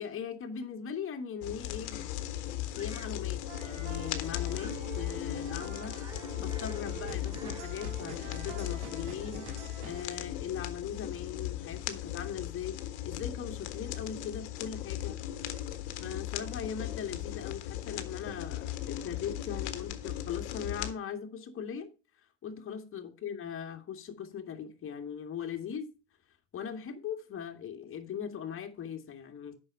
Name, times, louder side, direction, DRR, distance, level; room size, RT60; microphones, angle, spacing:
voice 1, 0.0-2.0 2.8-6.0 6.4-9.5 9.8-15.2 16.0-21.9 22.4-25.9 26.5-29.5, left 7 dB, 35° left, 2.1 m, -39 dB
sound 1, 1.4-20.9, left 12 dB, 70° left, 1.4 m, -37 dB
Bird vocalization bird call bird song, 2.7-3.2 4.5-4.9 5.4-5.5 5.7-6.9 7.2-7.8, right 2 dB, 10° right, 1.6 m, -53 dB
sound 2, 3.5-10.0, right 5 dB, 85° right, 3.1 m, -46 dB
8.7 x 6.1 x 5.5 m
hypercardioid pair, 80°, 34 cm